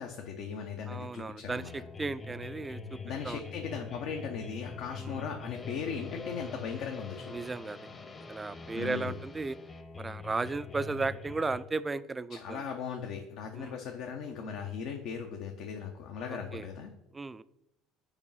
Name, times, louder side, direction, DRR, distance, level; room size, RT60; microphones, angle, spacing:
voice 1, 0.0-1.7 3.0-7.4 8.7-9.2 12.3-16.9, left 6 dB, 60° left, 3 dB, 0.8 m, -38 dB
voice 2, 0.9-3.0 3.2-3.4 5.0-5.2 7.3-7.9 8.3-9.6 10.0-12.6 13.6-13.8 16.3-16.7 17.1-17.4, right 3 dB, 20° right, 15 dB, 0.4 m, -35 dB
sound 1, 1.5-11.6, left 4 dB, 30° left, 1.0 m, -44 dB
7.0 x 4.7 x 5.5 m, 0.88 s
figure-of-eight pair, 65°, 0 cm